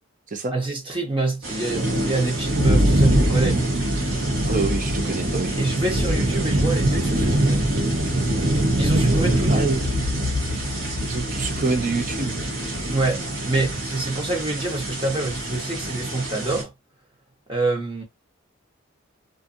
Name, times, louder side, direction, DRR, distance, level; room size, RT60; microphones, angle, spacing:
voice 1, 0.5-3.6 5.6-7.6 8.8-9.7 12.9-16.7 17.5-18.0, right 2 dB, 25° right, 1.0 m, -26 dB
sound 1, 1.4-16.6, right 1 dB, 90° right, 1.2 m, -23 dB
voice 2, 4.5-5.5 9.5-9.9 11.0-12.4, right 3 dB, 40° right, 0.6 m, -26 dB
sound 2, 9.7-13.5, left 4 dB, 65° left, 0.3 m, -32 dB
2.6 x 2.5 x 2.5 m
head